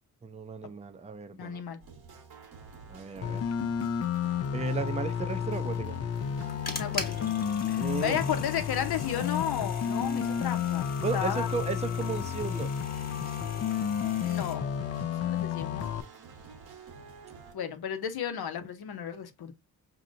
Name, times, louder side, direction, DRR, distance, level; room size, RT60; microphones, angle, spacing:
voice 1, 0.2-1.6 2.9-3.5 4.5-6.0 7.8-8.3 11.0-12.7, right 5 dB, 20° right, 0.5 m, -35 dB
voice 2, 1.4-1.8 6.8-7.3 7.7-11.5 14.2-14.7 15.2-15.9 17.5-19.5, left 9 dB, 80° left, 0.9 m, -33 dB
sound 1, 1.8-17.5, right 5 dB, 75° right, 1.2 m, -49 dB
sound 2, 3.2-16.0, left 8 dB, 45° left, 0.4 m, -31 dB
sound 3, 6.1-14.5, left 2 dB, 25° left, 1.2 m, -43 dB
5.2 x 2.9 x 2.5 m
cardioid pair, 90°, 37 cm